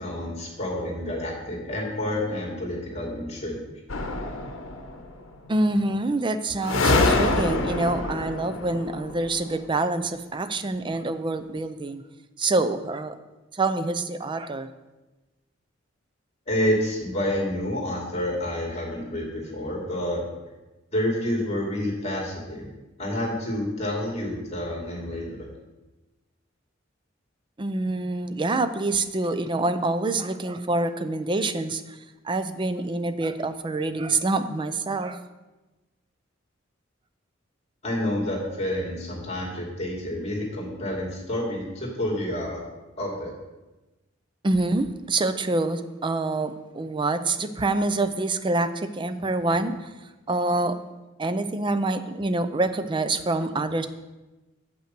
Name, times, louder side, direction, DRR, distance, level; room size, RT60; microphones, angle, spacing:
voice 1, 0.0-3.6 16.5-20.2 20.9-22.7 23.0-25.5 37.8-42.6 43.0-43.3, left 1 dB, 35° left, -1 dB, 2.4 m, -29 dB
sound 1, 3.9-5.1 6.6-9.5, left 2 dB, 85° left, 0.8 m, -25 dB
voice 2, 5.5-12.0 12.4-13.2 13.5-14.7 27.6-32.0 32.2-35.2 44.4-49.9 50.3-50.8 51.2-53.9, right 2 dB, 25° right, 11 dB, 0.5 m, -26 dB
7.7 x 5.7 x 5.9 m, 1.1 s
head